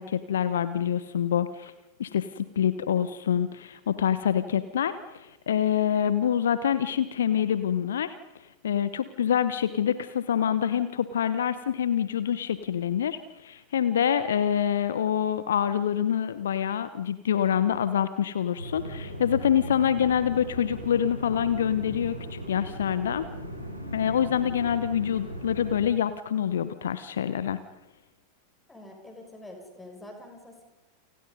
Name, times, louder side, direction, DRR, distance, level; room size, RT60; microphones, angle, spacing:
voice 1, 0.0-1.7 2.0-8.1 8.6-23.3 23.9-27.6, left 9 dB, 65° left, 14 dB, 1.0 m, -26 dB
sound 1, 18.5-25.8, equal, 90° right, 5.3 m, -38 dB
voice 2, 28.7-30.6, left 1 dB, 10° left, 3 dB, 6.6 m, -46 dB
29.5 x 27.5 x 5.4 m, 1.0 s
figure-of-eight pair, 90°, 0 cm